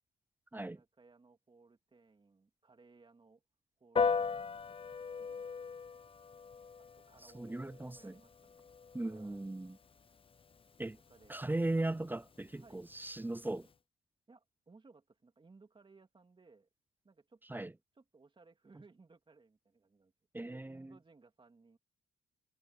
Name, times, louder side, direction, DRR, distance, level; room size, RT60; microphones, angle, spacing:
voice 1, 0.6-3.4 3.8-4.9 5.2-5.5 6.8-8.7 8.9-9.5 11.1-11.5 12.5-12.9 14.3-16.7 17.0-17.7 17.9-20.1 20.4-21.8, right 3 dB, 25° right, 2.8 m, -63 dB
Piano, 4.0-13.7, left 5 dB, 25° left, 0.7 m, -40 dB
voice 2, 7.3-8.1 8.9-9.8 10.8-11.0 11.3-13.7 17.5-17.7 20.3-20.9, right 2 dB, 10° right, 0.5 m, -38 dB
cardioid pair, 90°, 20 cm